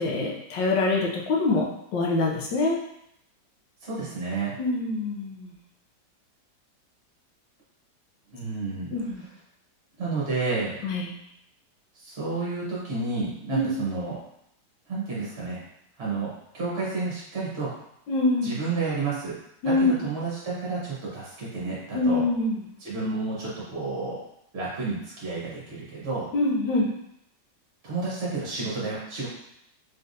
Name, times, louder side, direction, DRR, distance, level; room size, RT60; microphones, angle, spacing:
voice 1, 0.0-1.7 1.9-2.8 4.6-5.5 8.9-9.2 10.8-11.1 13.5-13.7 18.1-18.5 19.6-19.9 21.9-22.6 26.3-26.9, left 2 dB, 85° left, -2 dB, 1.5 m, -24 dB
voice 2, 3.8-4.5 8.3-8.9 10.0-10.8 11.9-14.2 14.9-15.6 16.0-17.7 18.4-19.4 19.6-22.2 22.8-24.2 24.5-26.3 27.8-29.3, right 3 dB, 45° right, -6 dB, 1.1 m, -31 dB
4.0 x 3.3 x 2.6 m, 0.77 s
omnidirectional pair, 1.9 m